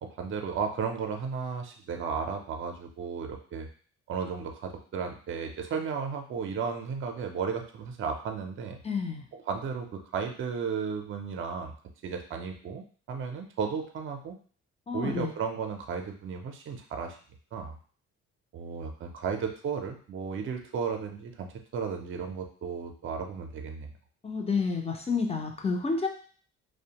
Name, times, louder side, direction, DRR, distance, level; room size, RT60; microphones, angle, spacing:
voice 1, 0.0-3.7 4.1-8.8 9.3-11.7 12.0-14.4 14.9-17.2 17.5-17.8 18.5-21.5 21.7-23.9, right 6 dB, 45° right, 4 dB, 0.5 m, -34 dB
voice 2, 8.8-9.2 14.9-15.3 24.2-26.1, left 4 dB, 20° left, 3 dB, 0.4 m, -29 dB
2.4 x 2.1 x 2.8 m, 0.43 s
cardioid pair, 90°, 30 cm